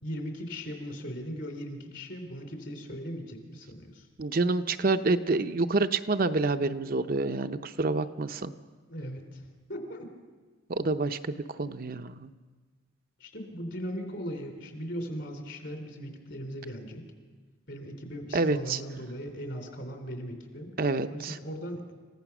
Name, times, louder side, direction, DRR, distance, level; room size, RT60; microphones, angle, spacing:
voice 1, 0.0-4.1 8.9-10.1 13.2-17.1 17.7-20.7 21.1-21.9, equal, 55° left, 4 dB, 3.5 m, -38 dB
voice 2, 4.2-8.5 10.7-12.3 18.3-18.8 20.8-21.4, right 3 dB, 45° right, 8 dB, 0.6 m, -28 dB
28.5 x 15.5 x 6.1 m, 1.4 s
head